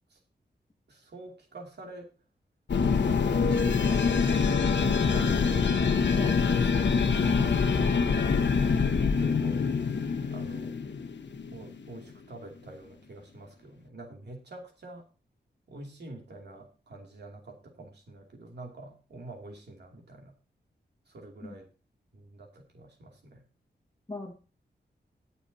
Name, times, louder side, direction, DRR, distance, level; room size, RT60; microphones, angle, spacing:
voice 1, 0.9-2.1 2.9-3.6 3.8-4.3 4.8-8.7 9.2-9.7 10.3-10.7 11.5-15.0 15.7-20.3 21.1-21.7 22.1-23.4, right 2 dB, 70° right, 2.7 m, -46 dB
sound 1, 2.7-12.0, left 5 dB, 85° left, 1.3 m, -25 dB
voice 2, 8.7-9.1 21.4-21.6 24.1-24.3, left 3 dB, 20° left, 1.7 m, -35 dB
19.5 x 7.1 x 2.8 m
wide cardioid pair, 150°, 18 cm